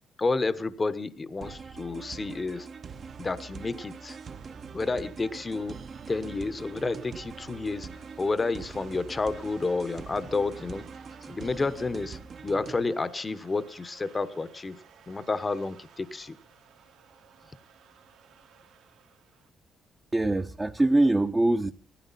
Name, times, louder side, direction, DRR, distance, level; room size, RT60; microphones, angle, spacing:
voice 1, 0.2-2.7 3.2-4.2 4.7-5.8 6.1-7.9 8.2-10.9 11.3-16.4, left 3 dB, 30° left, 14 dB, 1.1 m, -30 dB
sound 1, 1.4-12.8, right 5 dB, 50° right, 1.1 m, -43 dB
sound 2, 1.6-19.5, right 7 dB, 80° right, 2.6 m, -56 dB
voice 2, 20.1-21.7, right 2 dB, 20° right, 5 dB, 0.9 m, -23 dB
17.5 x 14.5 x 4.1 m, 0.37 s
cardioid pair, 75°, 0 cm